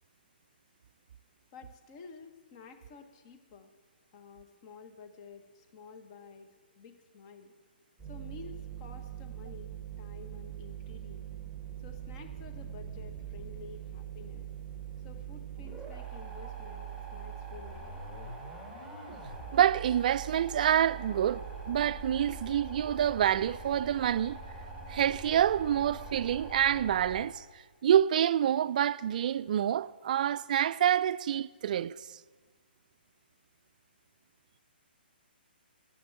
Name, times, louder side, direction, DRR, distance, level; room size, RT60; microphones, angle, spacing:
voice 1, 1.5-3.7 4.1-7.5 8.0-11.3 11.8-14.5 15.0-18.4, left 5 dB, 30° left, 1.0 m, -51 dB
sound 1, 8.0-27.2, right 6 dB, 10° left, 3.2 m, -43 dB
voice 2, 19.5-24.4 24.9-27.4 27.8-32.2, right 10 dB, 50° right, 0.3 m, -27 dB
11.5 x 7.6 x 8.5 m
hypercardioid pair, 155°, 6 cm